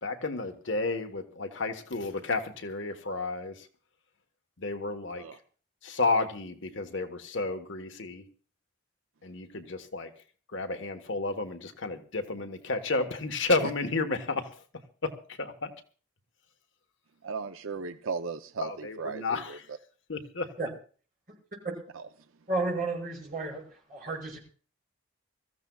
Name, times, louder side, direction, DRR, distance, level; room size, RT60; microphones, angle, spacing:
voice 1, 0.0-3.7 4.6-5.3 5.8-8.2 9.2-10.1 10.5-14.5 15.0-15.1 15.4-15.7 18.6-19.5 20.1-20.5, left 3 dB, 65° left, 6 dB, 1.2 m, -31 dB
voice 2, 17.2-19.8 21.9-22.1, right 5 dB, 80° right, 9 dB, 0.6 m, -36 dB
voice 3, 22.5-23.6 23.9-24.4, right 2 dB, 40° right, -1 dB, 6.1 m, -31 dB
24.5 x 14.5 x 2.3 m, 0.41 s
head